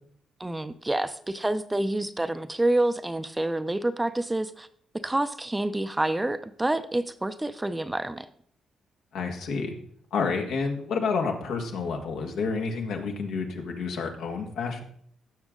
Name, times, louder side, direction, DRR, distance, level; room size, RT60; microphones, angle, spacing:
voice 1, 0.4-4.7 5.0-8.3, right 1 dB, 10° right, 11 dB, 0.6 m, -28 dB
voice 2, 9.1-9.8 10.1-14.8, left 4 dB, 80° left, 2 dB, 1.8 m, -29 dB
16.0 x 6.2 x 3.8 m, 0.62 s
cardioid pair, 90°, 0 cm